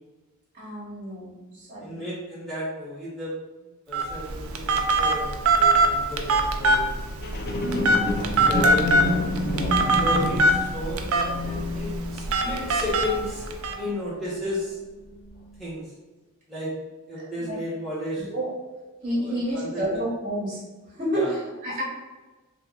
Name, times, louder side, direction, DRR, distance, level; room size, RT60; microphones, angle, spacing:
voice 1, 0.5-2.0 7.6-8.0 9.6-10.0 17.2-17.6 18.2-18.5 19.0-20.6 20.9-21.8, equal, 35° right, -7 dB, 1.0 m, -30 dB
voice 2, 1.8-3.3 3.9-6.9 7.7-9.2 10.0-13.4 13.8-14.8 15.6-15.8 16.5-16.7 17.1-18.3 19.2-19.8 21.1-21.3, left 1 dB, ahead, -10 dB, 1.2 m, -33 dB
Telephone, 3.9-13.7, right 2 dB, 75° right, 0.4 m, -23 dB
sound 1, 7.2-14.7 15.2-15.3, left 1 dB, 45° left, 0.4 m, -30 dB
2.8 x 2.4 x 3.7 m, 1.2 s
head